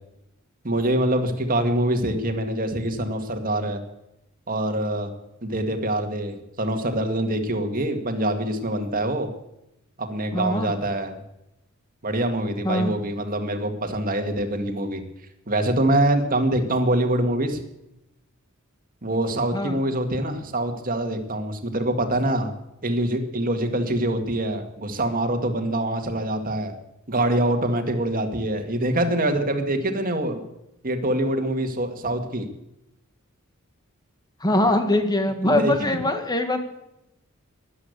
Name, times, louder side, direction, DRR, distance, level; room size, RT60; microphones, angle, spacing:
voice 1, 0.6-3.8 4.5-5.1 5.4-9.3 10.0-11.1 12.0-15.0 15.5-17.6 19.0-22.5 22.8-26.7 27.1-30.4 30.8-32.5 35.4-35.7, right 1 dB, 40° right, 5 dB, 2.1 m, -24 dB
voice 2, 10.3-10.7 12.6-13.0 19.5-19.8 34.4-36.7, left 1 dB, 20° left, 7 dB, 1.8 m, -22 dB
13.5 x 11.0 x 8.2 m, 0.86 s
head